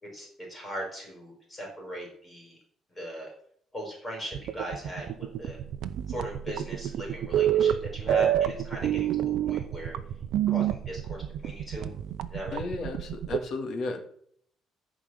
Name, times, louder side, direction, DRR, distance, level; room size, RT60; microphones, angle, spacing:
voice 1, 0.0-2.6 2.9-3.3 3.7-5.6 6.1-10.0 10.5-11.9 12.3-12.6, equal, 15° left, 0 dB, 4.5 m, -39 dB
sound 1, 4.3-13.4, right 10 dB, 65° right, 0.7 m, -28 dB
voice 2, 12.5-14.0, left 3 dB, 45° left, 4 dB, 2.2 m, -33 dB
14.5 x 4.9 x 8.0 m, 0.65 s
cardioid pair, 165°, 0 cm